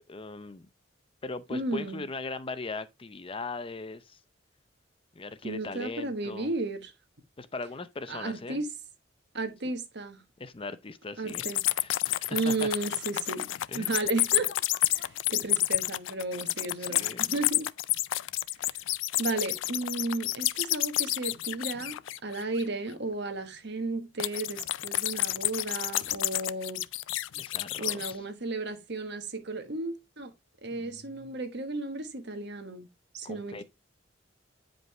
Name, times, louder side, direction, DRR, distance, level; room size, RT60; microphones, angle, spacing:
voice 1, 0.1-0.7 1.2-4.2 5.1-6.5 7.4-8.6 10.4-11.4 11.8-12.7 13.7-13.9 16.8-17.4 27.3-28.2 30.7-31.3 33.2-33.6, left 3 dB, 30° left, 0.6 m, -39 dB
voice 2, 1.5-2.0 5.4-6.9 8.1-8.7 9.3-10.2 11.2-11.6 12.3-14.5 14.9-17.7 19.2-26.8 27.8-30.3 30.6-32.9 33.1-33.6, right 2 dB, 65° right, 1.4 m, -34 dB
sound 1, 11.3-22.6 24.2-28.1, left 16 dB, 75° left, 0.4 m, -30 dB
9.2 x 5.3 x 3.2 m
head